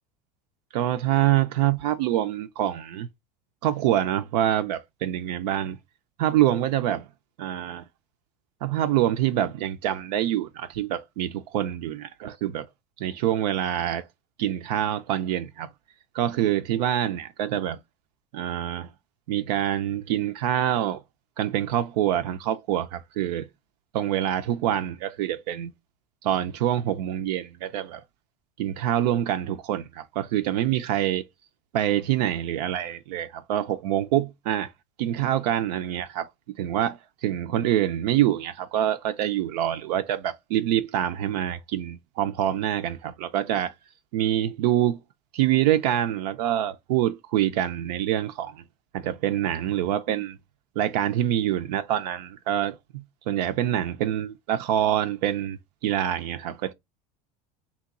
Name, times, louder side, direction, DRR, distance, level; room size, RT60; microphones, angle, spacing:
voice 1, 0.7-3.1 3.6-5.8 6.2-7.1 7.4-7.8 8.6-12.7 13.0-14.1 14.4-15.7 16.1-17.8 18.3-18.9 19.3-21.0 21.4-23.5 23.9-25.7 26.2-28.0 28.6-31.2 31.7-34.7 35.0-36.3 36.6-43.7 44.1-45.0 45.3-48.6 48.9-50.4 50.8-56.7, right 12 dB, 75° right, 0.4 m, -26 dB
2.9 x 2.2 x 3.6 m
hypercardioid pair, 95°, 21 cm